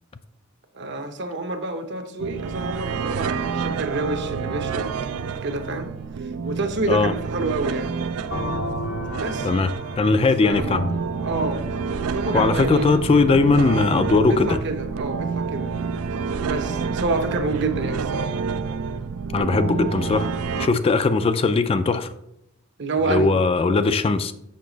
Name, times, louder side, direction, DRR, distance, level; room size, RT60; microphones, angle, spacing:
voice 1, 0.7-5.9 6.2-8.0 9.2-9.5 10.4-10.8 11.2-11.7 12.0-12.9 14.2-15.7 16.4-18.4 22.8-23.3, right 3 dB, 55° right, 6 dB, 0.8 m, -28 dB
sound 1, 2.2-20.7, right 5 dB, 85° right, 0.4 m, -28 dB
sound 2, 8.3-12.0, left 1 dB, 85° left, 1.1 m, -33 dB
voice 2, 10.0-10.9 12.3-14.6 19.3-22.1 23.1-24.3, left 3 dB, 25° left, 10 dB, 0.3 m, -19 dB
6.6 x 5.7 x 3.9 m, 0.80 s
head